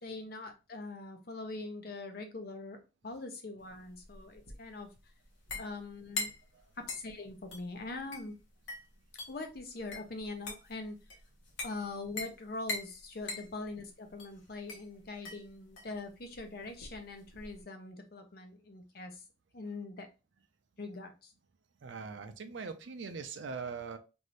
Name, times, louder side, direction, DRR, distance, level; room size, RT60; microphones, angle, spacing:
voice 1, 0.0-4.9 5.6-6.3 6.8-8.4 9.3-11.0 11.6-19.2 19.5-20.1 20.8-21.3, left 3 dB, 55° left, 5 dB, 0.7 m, -42 dB
glasses clinking, 3.7-17.6, left 3 dB, 85° left, 0.9 m, -44 dB
voice 2, 21.8-24.0, right 5 dB, 80° right, 8 dB, 0.5 m, -41 dB
2.6 x 2.6 x 3.2 m, 0.29 s
head